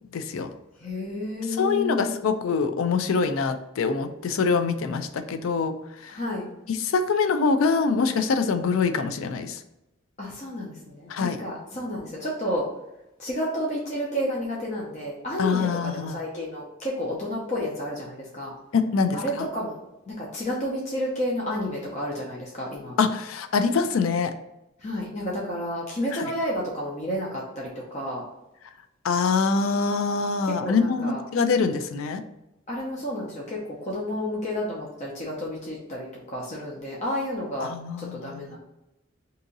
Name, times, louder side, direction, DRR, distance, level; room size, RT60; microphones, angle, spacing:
voice 1, 0.1-0.5 1.6-5.8 6.7-9.6 11.1-11.4 15.4-16.2 18.7-19.5 23.0-24.3 26.1-26.2 29.0-32.2 37.6-38.5, left 5 dB, 80° left, 9 dB, 0.4 m, -24 dB
voice 2, 0.8-2.2 6.1-6.5 10.2-12.7 13.2-18.5 19.1-19.7 20.1-23.0 24.8-28.2 30.4-31.2 32.7-37.7 38.0-38.6, equal, 35° left, -4 dB, 0.6 m, -31 dB
2.8 x 2.6 x 3.8 m, 0.92 s
head